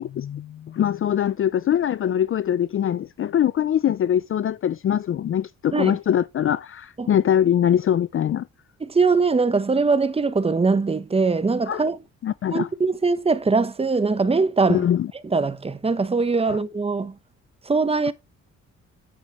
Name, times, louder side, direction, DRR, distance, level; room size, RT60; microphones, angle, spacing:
voice 1, 0.0-8.4 11.7-11.9 12.2-12.7 14.7-15.1 16.4-16.6, left 10 dB, 45° left, 0.5 m, -23 dB
voice 2, 8.8-12.0 12.5-14.8 15.2-17.1 17.7-18.1, right 4 dB, 20° right, 1.0 m, -21 dB
10.0 x 7.4 x 3.1 m
cardioid pair, 90°, 30 cm